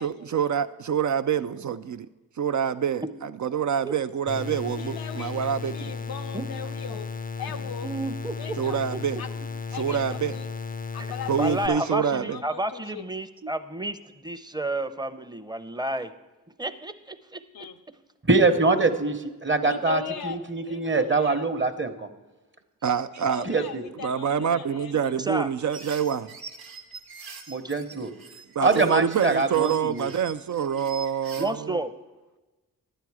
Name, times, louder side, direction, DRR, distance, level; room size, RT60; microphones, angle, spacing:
voice 1, 0.0-2.1 2.4-5.9 8.6-9.2 9.7-10.4 11.3-12.4 13.4-13.5 22.8-23.5 24.0-26.3 28.6-31.8, right 8 dB, 55° right, 11 dB, 0.4 m, -26 dB
sound 1, 4.3-11.7, left 5 dB, 25° left, 0.4 m, -34 dB
voice 2, 4.8-5.4 5.7-7.1 7.4-7.9 8.4-8.8 9.2-9.3 9.7-10.5 10.9-13.1 17.5-17.8 19.6-21.5 23.2-25.4, left 6 dB, 90° left, 6 dB, 0.7 m, -38 dB
voice 3, 7.8-8.4 8.7-9.0 9.4-9.5 10.9-11.1 11.4-16.1 16.6-17.4 25.2-25.5 27.6-27.7 31.4-31.9, right 1 dB, 10° right, 11 dB, 0.7 m, -31 dB
voice 4, 18.3-22.1 23.5-23.8 27.5-28.1 28.6-30.1, right 3 dB, 35° right, 9 dB, 1.0 m, -24 dB
sound 2, 25.7-31.5, right 5 dB, 90° right, 1.1 m, -44 dB
11.5 x 9.1 x 4.8 m, 1.2 s
cardioid pair, 50°, 35 cm